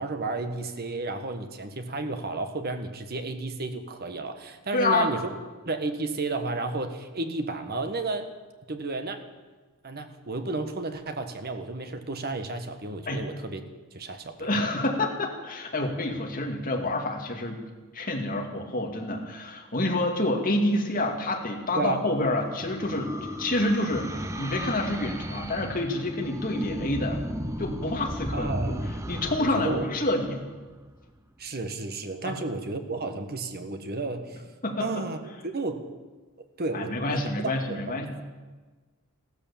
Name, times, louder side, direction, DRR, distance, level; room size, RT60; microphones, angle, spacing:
voice 1, 0.0-5.3 5.6-8.3 8.7-9.2 9.8-13.6 13.9-14.5 21.7-22.1 28.3-29.0 29.4-29.9 31.4-34.4 34.8-35.2 35.4-35.9 36.6-38.2, right 3 dB, 45° right, 7 dB, 1.3 m, -32 dB
voice 2, 4.7-5.1 13.1-13.2 14.4-17.6 17.9-27.2 27.6-28.8 29.1-30.4 32.2-32.4 34.6-34.9 36.7-38.2, left 2 dB, 40° left, 1 dB, 2.3 m, -28 dB
sound 1, 21.5-31.0, equal, 15° right, 0.7 m, -36 dB
15.0 x 13.0 x 7.2 m, 1.3 s
head